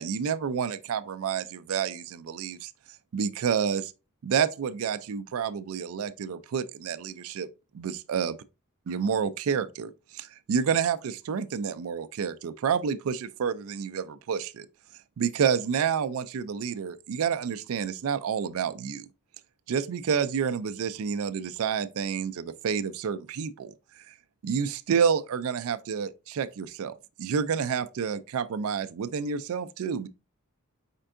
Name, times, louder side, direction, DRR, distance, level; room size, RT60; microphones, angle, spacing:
voice 1, 0.0-2.7 3.1-3.9 4.2-7.5 7.7-8.4 8.9-14.7 15.2-19.1 19.7-24.1 24.4-30.1, right 7 dB, 65° right, 0.4 m, -29 dB
4.4 x 4.4 x 2.5 m
head